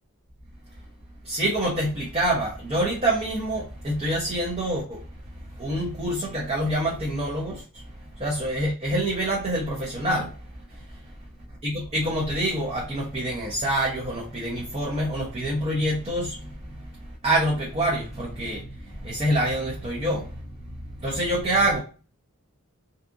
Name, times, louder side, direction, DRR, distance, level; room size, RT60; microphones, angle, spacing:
voice 1, 1.2-5.0 5.6-7.6 8.2-10.3 11.6-16.5 17.2-20.4 21.0-21.8, right 1 dB, 25° right, 0.6 m, -26 dB
2.7 x 2.4 x 2.4 m
head